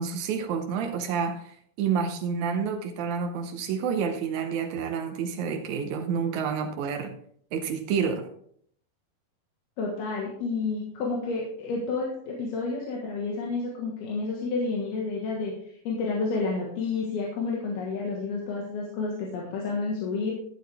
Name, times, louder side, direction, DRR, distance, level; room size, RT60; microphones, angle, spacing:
voice 1, 0.0-7.2 7.5-8.3, right 6 dB, 85° right, 1.6 m, -29 dB
voice 2, 9.8-15.5 15.9-20.3, left 4 dB, 80° left, 3.6 m, -30 dB
13.0 x 8.6 x 3.5 m
omnidirectional pair, 4.5 m